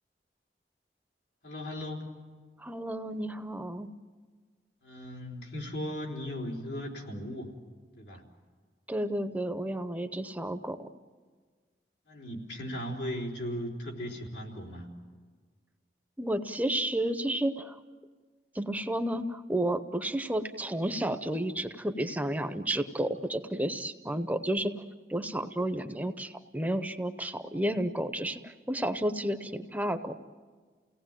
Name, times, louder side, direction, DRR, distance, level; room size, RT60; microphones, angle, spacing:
voice 1, 1.4-2.1 4.8-7.5 8.0-8.2 12.1-14.9, equal, 80° left, -1 dB, 4.1 m, -37 dB
voice 2, 2.6-3.9 8.9-10.9 16.2-17.8 18.5-24.7 25.1-30.1, right 1 dB, 10° right, 9 dB, 0.7 m, -31 dB
29.0 x 18.0 x 9.0 m, 1.5 s
head